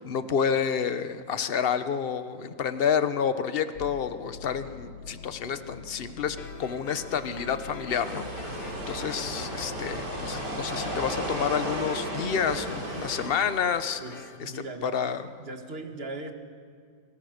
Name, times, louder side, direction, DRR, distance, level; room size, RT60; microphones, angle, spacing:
voice 1, 0.0-14.0 14.4-14.5 14.8-15.3, left 7 dB, 40° left, 11 dB, 1.0 m, -29 dB
sound 1, 3.7-11.6, left 5 dB, 85° left, 1.7 m, -45 dB
sound 2, 6.4-14.4, left 4 dB, 65° left, 2.4 m, -44 dB
sound 3, 7.9-13.3, right 1 dB, 65° right, 4.0 m, -34 dB
voice 2, 14.0-15.0 15.4-16.3, right 2 dB, 35° right, 5 dB, 2.0 m, -38 dB
28.5 x 26.0 x 6.6 m, 2.1 s
omnidirectional pair, 2.0 m